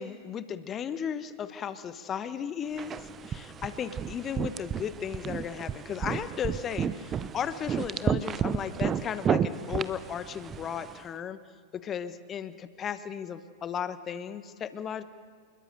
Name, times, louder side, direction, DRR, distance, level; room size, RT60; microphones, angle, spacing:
voice 1, 0.0-3.0 3.3-11.4 11.7-15.0, left 8 dB, 25° left, 13 dB, 1.1 m, -35 dB
sound 1, 2.8-11.0, right 7 dB, 25° right, 0.7 m, -32 dB
27.0 x 21.0 x 6.8 m, 2.1 s
figure-of-eight pair, 90°, 0 cm